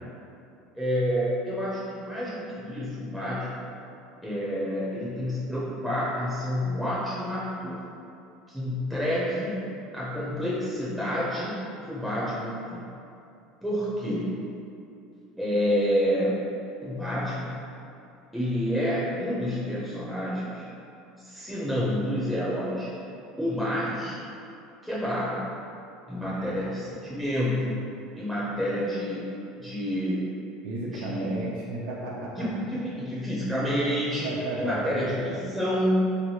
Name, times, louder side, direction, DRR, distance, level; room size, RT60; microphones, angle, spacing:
voice 1, 0.7-3.6 4.2-7.8 8.5-9.5 9.9-11.5 11.8-12.8 13.6-14.3 15.4-16.4 16.8-17.6 18.3-20.6 21.2-22.9 23.4-24.2 24.8-25.5 26.1-27.8 28.1-29.3 29.6-30.3 30.8-31.3 32.4-34.3 34.6-36.1, equal, ahead, -9 dB, 0.5 m, -28 dB
voice 2, 26.2-26.7 30.6-32.4 34.2-34.9, right 2 dB, 80° right, -5 dB, 0.5 m, -34 dB
3.1 x 2.6 x 2.7 m, 2.7 s
cardioid pair, 145°, 0 cm